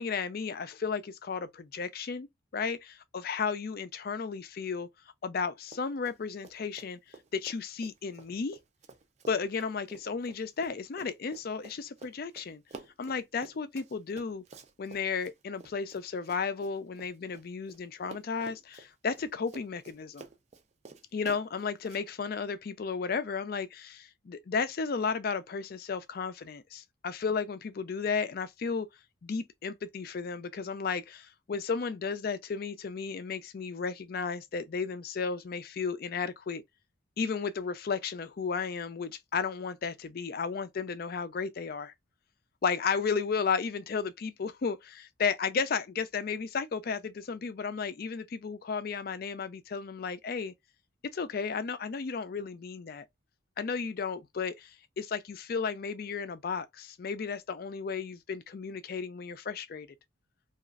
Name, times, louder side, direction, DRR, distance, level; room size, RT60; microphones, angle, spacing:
voice 1, 0.0-2.3 2.5-4.9 5.2-7.0 7.3-8.6 9.3-12.6 13.0-14.4 14.8-20.3 21.1-28.9 29.2-36.6 37.2-41.9 42.6-50.5 51.1-53.1 53.6-54.7 55.0-59.9, left 5 dB, 45° left, 0.4 m, -34 dB
Run, 5.6-6.2 6.4-17.8 18.1-22.0, right 3 dB, 35° right, 0.4 m, -51 dB
3.0 x 2.4 x 2.3 m
head